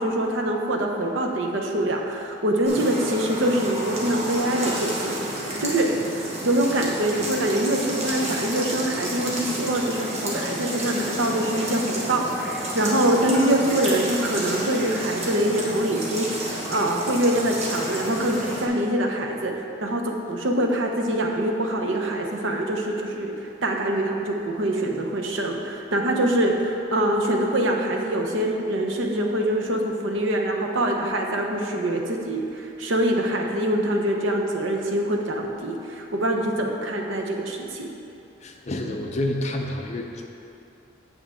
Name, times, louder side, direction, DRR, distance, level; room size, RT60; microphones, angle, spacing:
voice 1, 0.0-5.9 6.4-23.3 23.6-37.9, right 1 dB, 75° right, 1 dB, 0.8 m, -24 dB
sound 1, 2.6-18.7, right 1 dB, 35° right, 1.2 m, -31 dB
voice 2, 38.4-40.3, left 1 dB, 35° left, 2 dB, 0.6 m, -29 dB
8.2 x 6.9 x 3.6 m, 2.7 s
head